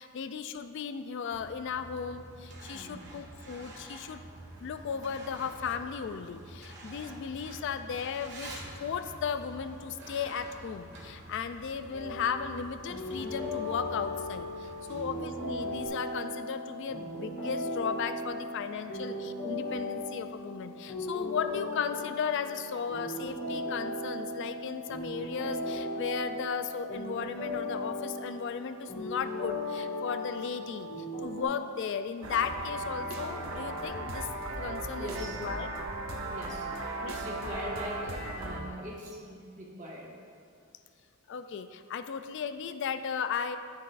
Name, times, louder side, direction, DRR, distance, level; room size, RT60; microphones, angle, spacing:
voice 1, 0.0-4.2 4.6-34.3 34.6-35.7 36.7-37.2 41.3-43.6, left 6 dB, 55° left, 10 dB, 0.3 m, -36 dB
Truck, 1.3-15.9, right 1 dB, 55° right, 1.6 m, -48 dB
voice 2, 2.7-3.0 14.9-15.0 35.0-35.4 36.3-36.6 37.1-40.1, equal, 35° right, -4 dB, 1.5 m, -41 dB
sound 1, 11.9-31.4, left 1 dB, 80° left, 2.0 m, -37 dB
sound 2, 32.2-38.6, right 2 dB, 80° right, 0.9 m, -36 dB
10.0 x 9.4 x 2.5 m, 2.3 s
head